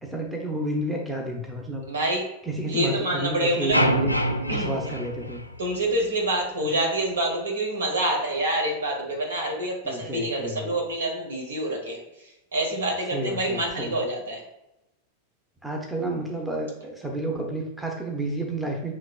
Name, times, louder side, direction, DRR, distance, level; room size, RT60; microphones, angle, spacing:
voice 1, 0.0-1.9 2.4-4.2 4.5-5.4 9.8-10.7 13.1-14.0 15.6-18.9, right 1 dB, 10° right, 1 dB, 0.8 m, -30 dB
voice 2, 1.9-2.2 2.7-3.8 4.5-4.8 5.6-12.0 12.5-14.4, right 1 dB, 70° right, 0 dB, 1.2 m, -27 dB
sound 1, 3.7-6.0, equal, 90° left, 0.3 m, -26 dB
7.2 x 3.1 x 2.4 m, 0.90 s
figure-of-eight pair, 90°, 0 cm